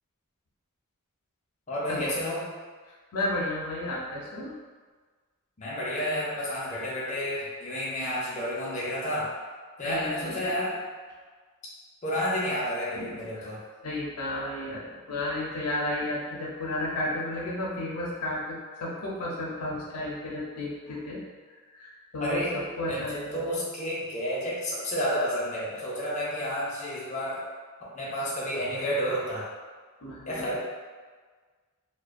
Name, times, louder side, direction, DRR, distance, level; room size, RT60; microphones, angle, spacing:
voice 1, 1.7-2.4 5.6-9.3 9.8-10.8 12.0-13.6 22.2-22.6 22.9-27.4 27.8-29.5 30.3-30.6, equal, 35° left, -7 dB, 0.5 m, -30 dB
voice 2, 3.1-4.5 9.8-10.5 13.0-13.5 13.8-21.2 21.5-23.5 30.0-30.5, left 1 dB, 85° left, -4 dB, 0.5 m, -33 dB
2.4 x 2.1 x 2.4 m, 1.5 s
head